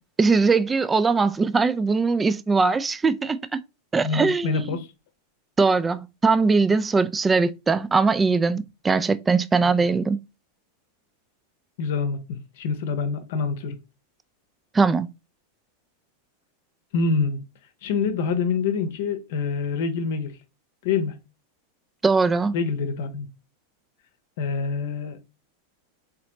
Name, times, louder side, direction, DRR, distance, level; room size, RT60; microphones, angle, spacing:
voice 1, 0.2-3.6 3.9-4.8 5.6-10.2 14.7-15.1 22.0-22.5, right 4 dB, 15° right, 0.3 m, -21 dB
voice 2, 4.0-4.9 9.6-9.7 11.8-13.8 16.9-17.4 17.8-20.3 20.8-21.2 22.5-23.3 24.4-25.2, left 5 dB, 55° left, 0.8 m, -26 dB
4.1 x 3.9 x 2.9 m
figure-of-eight pair, 90°, 0 cm